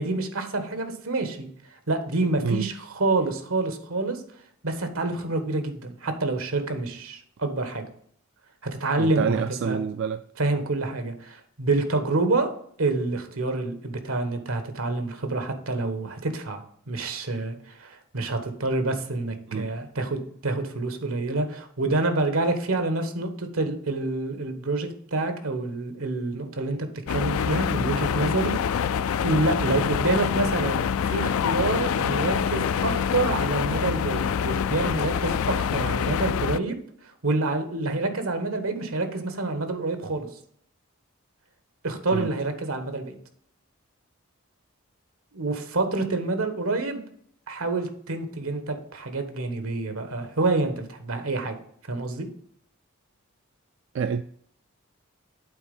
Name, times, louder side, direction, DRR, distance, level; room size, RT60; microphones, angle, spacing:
voice 1, 0.0-1.5 1.9-4.2 4.6-7.8 8.6-9.8 10.4-12.5 12.8-28.8 29.2-36.8 37.2-40.3 41.8-43.2 45.3-47.0 47.5-51.5 51.9-52.3, right 2 dB, 85° right, 1.4 m, -27 dB
voice 2, 9.0-10.2 19.5-19.7 42.1-42.3 53.9-54.2, right 6 dB, 60° right, 0.3 m, -27 dB
sound 1, 27.1-36.6, left 7 dB, 85° left, 0.4 m, -26 dB
8.5 x 4.1 x 5.4 m
head